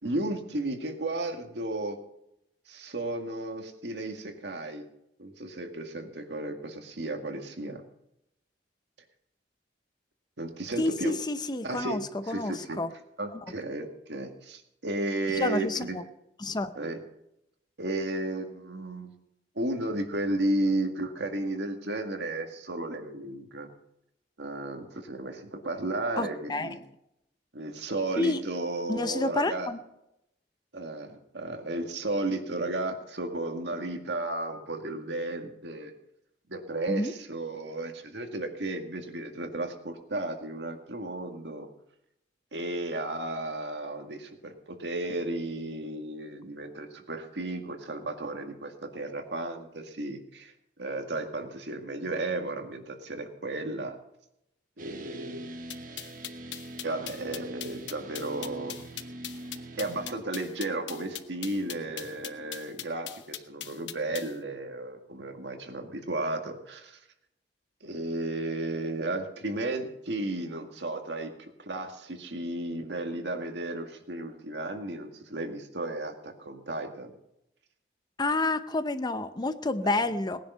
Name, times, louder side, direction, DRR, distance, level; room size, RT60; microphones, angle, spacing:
voice 1, 0.0-2.0 2.7-4.9 5.2-7.8 10.4-11.1 11.6-12.8 13.2-16.0 16.8-17.0 17.8-19.1 19.6-23.7 24.4-26.8 27.5-29.7 30.7-35.9 36.5-41.7 42.5-50.5 50.8-54.0 54.8-55.5 56.8-58.8 59.8-67.0 67.8-77.1 79.8-80.1, right 2 dB, 70° right, 4 dB, 1.9 m, -34 dB
voice 2, 10.8-12.9 15.3-16.0 16.4-16.7 26.2-26.8 28.2-28.4 28.9-29.8 36.9-37.1 78.2-80.4, left 2 dB, 25° left, 11 dB, 0.7 m, -29 dB
sound 1, 54.8-60.2, right 1 dB, 50° right, 1.5 m, -43 dB
sound 2, 55.7-64.3, left 11 dB, 85° left, 1.0 m, -40 dB
sound 3, 58.1-63.3, equal, 20° right, 2.9 m, -55 dB
19.0 x 10.5 x 5.6 m, 0.83 s
head